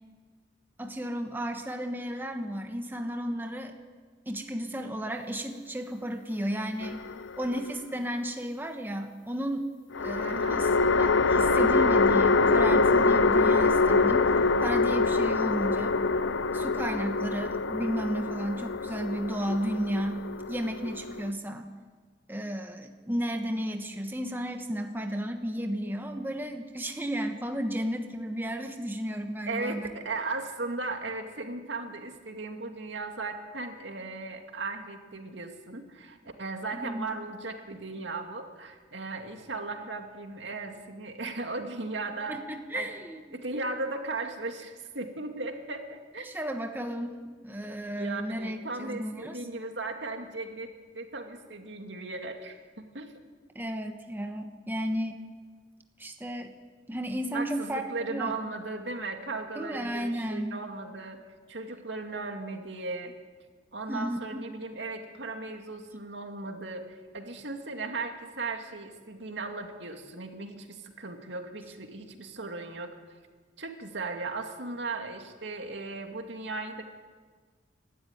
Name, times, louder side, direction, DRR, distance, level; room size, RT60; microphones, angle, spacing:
voice 1, 0.8-3.7 4.3-7.0 7.4-9.7 10.0-10.7 11.0-14.3 14.6-16.0 16.5-20.2 20.5-21.7 22.3-29.9 36.7-37.1 42.3-43.4 46.2-49.4 53.5-55.2 56.0-56.5 56.9-58.3 59.5-60.6 63.9-64.4, equal, 10° right, 4 dB, 1.2 m, -33 dB
sound 1, 6.8-7.7 9.9-21.3, left 3 dB, 85° left, 0.6 m, -25 dB
voice 2, 10.2-10.6 29.5-42.4 42.7-42.9 43.3-46.3 47.9-53.1 57.3-61.2 61.5-63.1 63.7-72.9 73.6-76.8, right 3 dB, 75° right, 4 dB, 2.4 m, -37 dB
25.0 x 12.5 x 9.9 m, 1.5 s
head